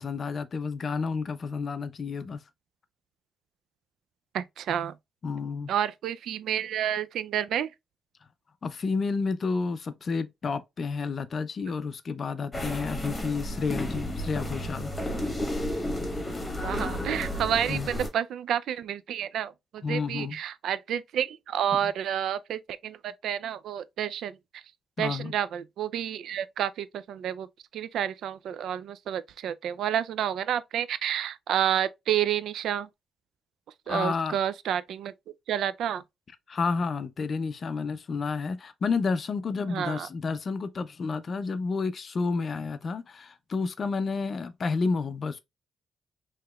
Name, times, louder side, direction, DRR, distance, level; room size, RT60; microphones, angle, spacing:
voice 1, 0.0-2.4 5.2-5.7 8.6-14.9 17.7-17.9 19.8-20.4 21.7-21.9 25.0-25.3 33.9-34.4 36.5-45.4, left 4 dB, 35° left, 0.4 m, -30 dB
voice 2, 4.3-5.0 5.7-7.7 16.6-24.6 25.0-27.5 27.7-32.9 33.9-35.1 35.5-36.0 39.7-40.1, right 10 dB, 85° right, 0.3 m, -30 dB
sound 1, 12.5-18.1, left 1 dB, 15° left, 1.0 m, -32 dB
4.8 x 2.9 x 2.3 m
wide cardioid pair, 165°, 0 cm